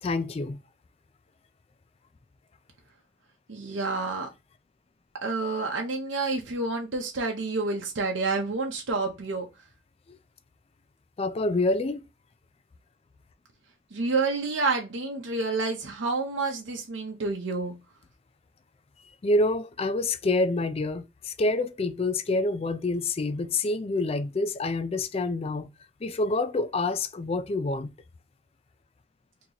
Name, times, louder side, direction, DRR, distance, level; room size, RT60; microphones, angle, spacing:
voice 1, 0.0-0.6 10.1-10.2 11.2-12.0 19.2-25.7 26.0-27.9, left 2 dB, 30° left, 0.4 m, -27 dB
voice 2, 3.5-4.3 5.2-9.5 13.9-17.7, right 3 dB, 75° right, 0.8 m, -29 dB
3.9 x 2.9 x 2.9 m
head